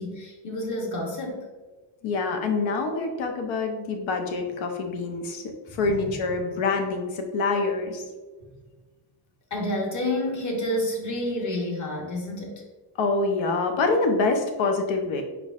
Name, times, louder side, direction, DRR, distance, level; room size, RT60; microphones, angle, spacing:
voice 1, 0.0-1.4 5.7-6.1 9.5-12.6, left 1 dB, 40° left, 0 dB, 1.0 m, -29 dB
voice 2, 2.0-5.4 5.7-8.0 13.0-15.2, left 3 dB, 90° left, 4 dB, 0.9 m, -26 dB
4.7 x 4.6 x 2.4 m, 1.3 s
cardioid pair, 170°, 45 cm